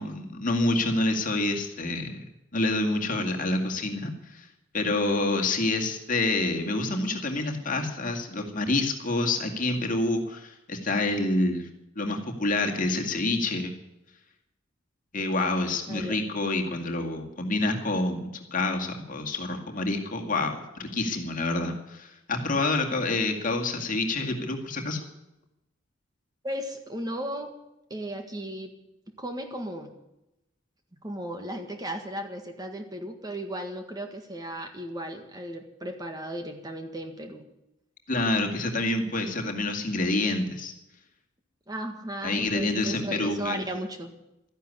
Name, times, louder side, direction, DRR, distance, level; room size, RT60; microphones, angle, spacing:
voice 1, 0.0-2.2 2.5-4.5 4.7-11.7 12.0-13.7 15.1-25.0 38.1-40.7 42.2-43.6, left 2 dB, 40° left, 3 dB, 2.2 m, -27 dB
voice 2, 26.4-27.5 27.9-28.7 29.2-29.9 31.0-37.4 41.7-44.1, right 1 dB, 20° right, 4 dB, 1.7 m, -35 dB
13.5 x 11.0 x 9.7 m, 0.91 s
head